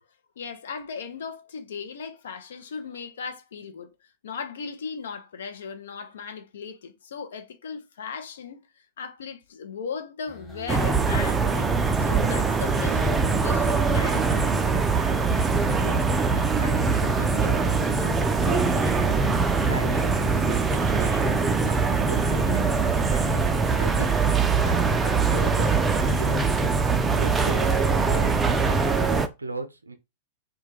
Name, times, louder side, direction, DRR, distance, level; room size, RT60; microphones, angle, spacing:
voice 1, 0.4-3.9 4.2-8.6 9.0-14.7, left 6 dB, 65° left, 0.5 m, -37 dB
sound 1, 10.3-24.0, right 1 dB, 15° left, 1.1 m, -41 dB
sound 2, 10.7-29.3, right 4 dB, 15° right, 0.3 m, -22 dB
voice 2, 15.7-16.1 16.3-19.0 19.7-21.3 21.6-21.8 22.1-22.7 23.1-26.6 27.2-29.9, right 2 dB, 80° right, 0.5 m, -38 dB
2.2 x 2.2 x 3.1 m
figure-of-eight pair, 100°, 0 cm